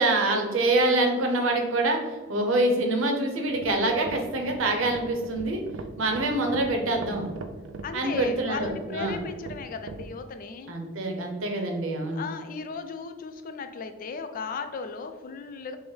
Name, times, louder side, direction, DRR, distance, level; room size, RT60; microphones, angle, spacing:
voice 1, 0.0-2.0 2.3-5.6 6.0-7.3 7.9-9.2 10.7-12.2, right 2 dB, 90° right, 3 dB, 0.7 m, -25 dB
sound 1, 3.5-10.1, right 3 dB, 70° right, 0.4 m, -40 dB
voice 2, 7.8-10.8 12.2-15.8, left 5 dB, 45° left, 8 dB, 0.3 m, -36 dB
5.4 x 2.0 x 3.2 m, 1.3 s
head